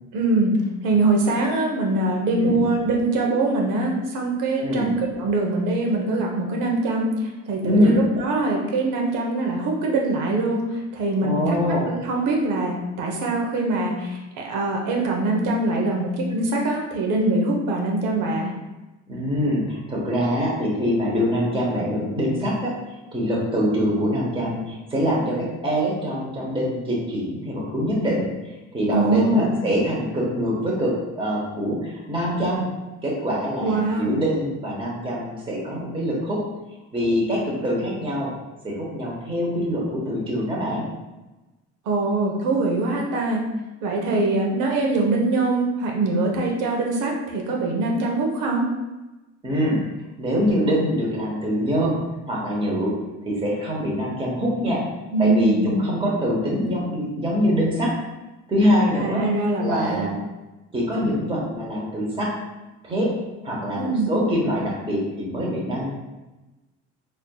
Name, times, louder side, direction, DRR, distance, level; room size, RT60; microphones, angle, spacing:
voice 1, 0.1-0.6 0.8-10.6 10.9-18.5 28.9-29.5 33.6-34.1 41.9-43.4 43.8-48.7 55.1-55.7 59.0-60.1 63.7-64.1, right 2 dB, 85° right, 0 dB, 0.9 m, -23 dB
voice 2, 4.6-4.9 7.6-8.0 11.2-11.9 19.1-22.7 23.1-28.3 28.7-32.6 33.0-36.4 36.9-38.3 38.6-40.8 49.4-49.8 50.2-52.0 52.3-52.9 53.2-54.8 55.2-57.9 58.5-59.2 59.6-60.2 60.7-62.3 62.8-63.1 63.4-65.9, equal, 15° right, -4 dB, 1.0 m, -24 dB
4.2 x 3.3 x 2.2 m, 1.1 s
cardioid pair, 115°, 31 cm